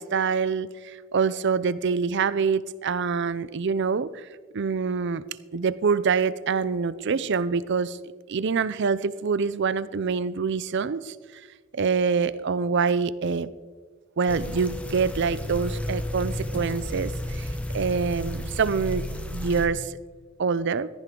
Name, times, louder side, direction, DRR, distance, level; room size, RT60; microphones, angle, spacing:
voice 1, 0.0-4.3 4.5-5.2 5.5-8.0 8.3-11.2 11.7-13.5 14.2-17.5 17.7-19.1 19.3-19.9 20.4-20.9, right 5 dB, 55° right, 17 dB, 0.5 m, -25 dB
sound 1, 14.3-19.7, left 1 dB, 5° left, 1.1 m, -32 dB
15.0 x 14.5 x 3.8 m, 1.5 s
head